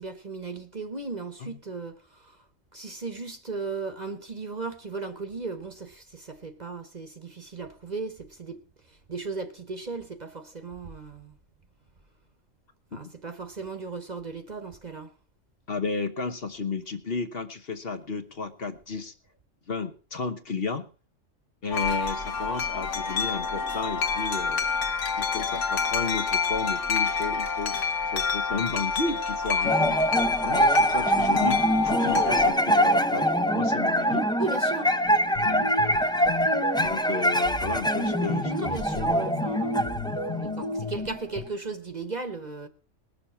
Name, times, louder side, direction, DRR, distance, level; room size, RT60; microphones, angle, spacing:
voice 1, 0.0-2.4 2.7-8.6 8.9-11.4 12.9-15.1 34.4-35.0 38.5-42.7, right 4 dB, 35° right, 1.1 m, -36 dB
voice 2, 15.7-19.1 19.7-20.8 21.6-24.6 25.2-27.8 28.1-30.0 30.4-33.3 33.5-34.3 35.4-35.7 36.7-39.0, left 4 dB, 50° left, 1.3 m, -33 dB
Wind chime, 21.7-32.5, left 5 dB, 75° left, 1.4 m, -28 dB
sound 1, 29.6-41.2, equal, 5° left, 0.3 m, -24 dB
sound 2, 35.0-37.1 37.4-41.4, left 3 dB, 30° left, 0.9 m, -34 dB
20.0 x 6.8 x 5.7 m
omnidirectional pair, 1.3 m